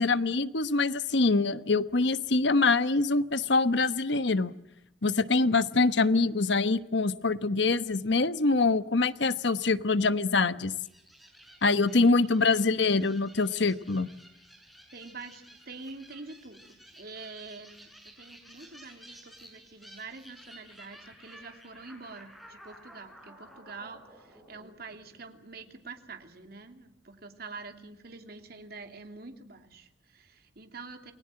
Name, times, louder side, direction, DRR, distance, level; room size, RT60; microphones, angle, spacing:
voice 1, 0.0-4.5 5.0-10.7 11.6-14.1, left 3 dB, 65° left, 12 dB, 1.1 m, -25 dB
sound 1, 10.8-25.5, equal, ahead, 6.7 m, -54 dB
voice 2, 14.9-31.1, right 4 dB, 55° right, 5 dB, 2.8 m, -46 dB
29.0 x 20.5 x 7.7 m, 0.83 s
head